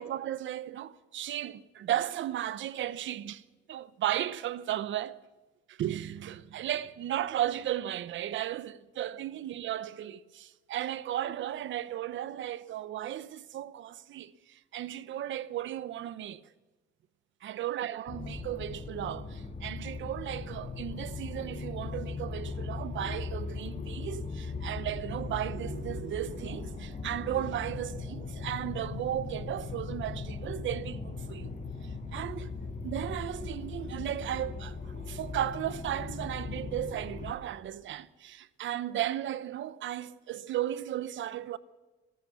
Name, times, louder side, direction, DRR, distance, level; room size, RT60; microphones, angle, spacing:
voice 1, 0.0-3.4 3.7-5.2 5.7-16.4 17.4-31.6 31.8-32.5 32.8-41.6, right 12 dB, 75° right, 1.0 m, -35 dB
sound 1, 18.1-37.3, left 4 dB, 40° left, 5.2 m, -39 dB
26.5 x 14.5 x 6.9 m
cardioid pair, 90°, 20 cm